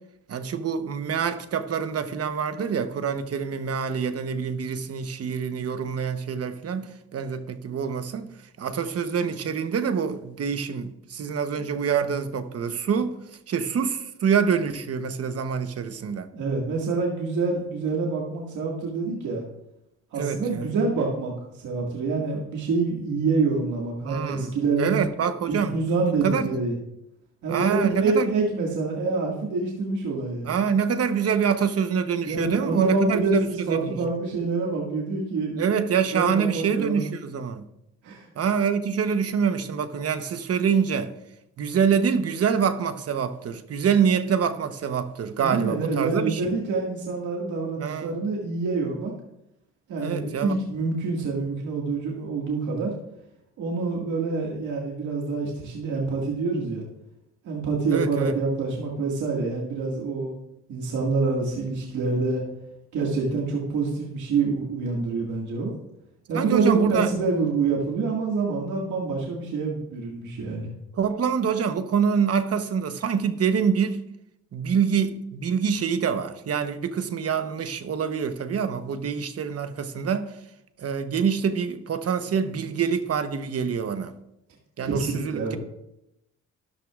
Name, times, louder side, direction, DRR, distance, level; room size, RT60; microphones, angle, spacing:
voice 1, 0.3-8.3 8.6-13.1 13.5-16.3 20.2-20.7 24.0-25.8 26.2-26.5 27.5-28.3 30.4-34.0 35.6-37.6 38.4-41.1 41.6-46.5 47.8-48.2 50.0-50.5 57.9-58.3 66.3-67.1 70.9-74.0 74.5-80.3 80.8-84.1 84.8-85.6, right 6 dB, 55° right, 1.0 m, -25 dB
voice 2, 16.3-19.4 20.1-21.3 21.6-25.0 25.5-26.7 27.4-30.6 32.3-35.8 36.1-37.0 38.0-38.3 45.4-49.1 49.9-52.9 53.6-56.8 57.4-60.3 60.7-62.4 62.9-65.7 66.3-70.7 84.8-85.6, right 3 dB, 75° right, 2.0 m, -26 dB
12.5 x 12.0 x 2.5 m
cardioid pair, 90°, 30 cm